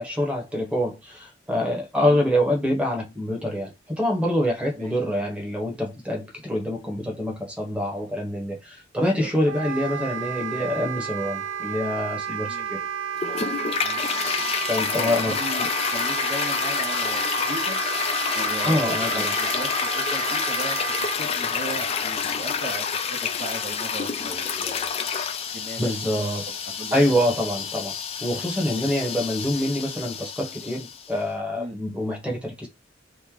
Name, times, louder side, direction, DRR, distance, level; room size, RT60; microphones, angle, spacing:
voice 1, 0.0-12.8 14.7-15.4 18.6-19.4 25.8-26.4 26.9-32.7, left 1 dB, 5° right, 0.9 m, -26 dB
Wind instrument woodwind instrument, 9.5-21.2, right 8 dB, 85° right, 0.4 m, -31 dB
Toilet flush, 13.2-31.1, left 6 dB, 30° left, 0.3 m, -28 dB
voice 2, 13.7-14.2 14.9-17.8 18.3-24.9 25.5-26.2 26.8-27.3 28.7-28.9 31.6-31.8, right 1 dB, 45° right, 0.7 m, -37 dB
3.0 x 2.1 x 3.6 m
head